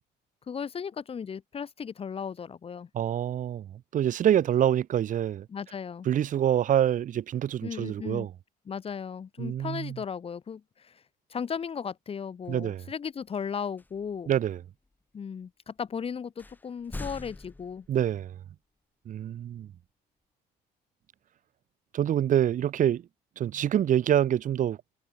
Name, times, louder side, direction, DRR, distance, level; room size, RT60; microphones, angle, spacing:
voice 1, 0.5-2.9 5.5-6.1 7.6-8.3 8.7-11.0 11.3-14.3 15.1-17.9, left 6 dB, 35° left, 1.4 m, -36 dB
voice 2, 2.9-5.5 6.0-8.3 9.4-10.0 12.5-12.9 14.3-14.6 17.9-18.4 19.1-19.7 21.9-23.1 23.4-24.8, right 10 dB, 50° right, 1.0 m, -26 dB
sound 1, 12.5-12.7 13.8-14.2 14.8-14.9 15.8-15.9 16.4-18.3, left 2 dB, 10° left, 1.0 m, -43 dB
cardioid pair, 110°, 17 cm